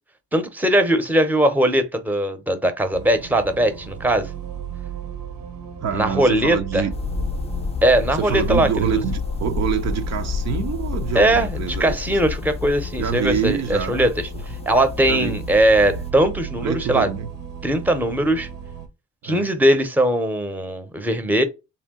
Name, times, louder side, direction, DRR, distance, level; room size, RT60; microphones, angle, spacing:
voice 1, 0.3-4.3 5.9-6.8 7.8-9.0 11.1-14.3 14.7-17.1 17.6-18.5 19.2-21.4, right 1 dB, 5° right, 0.8 m, -20 dB
sound 1, 2.9-18.9, right 8 dB, 80° right, 1.2 m, -36 dB
voice 2, 5.8-6.9 8.1-12.2 13.0-14.1 14.3-14.5 15.1-15.4 16.6-17.3 19.2-19.5, right 8 dB, 60° right, 0.6 m, -26 dB
sound 2, 6.9-16.1, left 6 dB, 20° left, 0.5 m, -30 dB
3.4 x 2.7 x 3.6 m
cardioid pair, 90°, 30 cm